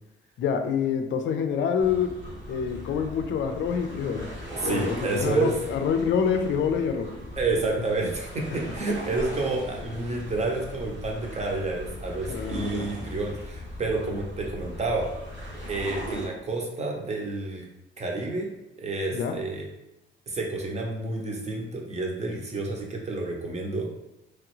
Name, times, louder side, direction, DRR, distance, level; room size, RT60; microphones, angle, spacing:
voice 1, 0.4-2.2 2.5-4.3 4.6-7.1 12.3-12.9 19.1-19.4, left 7 dB, 70° left, 6 dB, 0.4 m, -26 dB
sound 1, 1.8-16.3, equal, 70° right, 1.1 m, -38 dB
voice 2, 4.6-5.5 7.4-15.1 15.7-17.6 18.0-18.5 18.8-19.7 20.3-23.9, right 3 dB, 35° right, 0 dB, 0.8 m, -29 dB
3.1 x 2.4 x 3.0 m, 0.89 s
cardioid pair, 90°, 20 cm